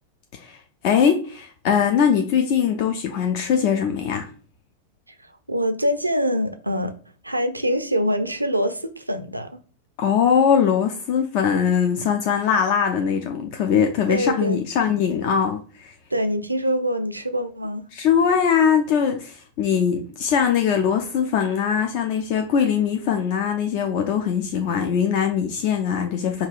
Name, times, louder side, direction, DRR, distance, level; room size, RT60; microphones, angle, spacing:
voice 1, 0.3-4.3 10.0-15.9 17.9-26.5, left 7 dB, 45° left, 0.4 m, -21 dB
voice 2, 5.5-6.9 7.2-9.6 14.1-14.6 16.1-17.8, equal, 85° right, 0.4 m, -24 dB
5.4 x 2.3 x 2.4 m
figure-of-eight pair, 90°, 0 cm